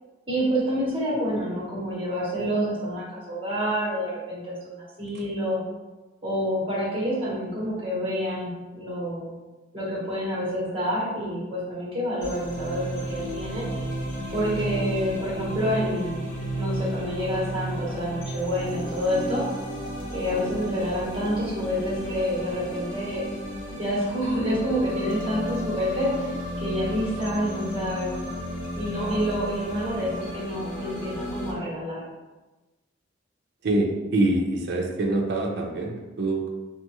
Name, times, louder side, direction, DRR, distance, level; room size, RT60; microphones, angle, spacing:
voice 1, 0.3-5.6 6.2-9.3 9.7-13.6 14.3-16.2 16.5-19.4 20.1-23.2 23.7-26.3 26.6-28.1 28.7-32.0, equal, 30° right, -6 dB, 1.1 m, -28 dB
sound 1, 12.2-31.5, equal, 45° left, 0.6 m, -33 dB
voice 2, 33.6-36.5, right 2 dB, 60° right, 1 dB, 0.5 m, -25 dB
2.7 x 2.4 x 2.9 m, 1.2 s
head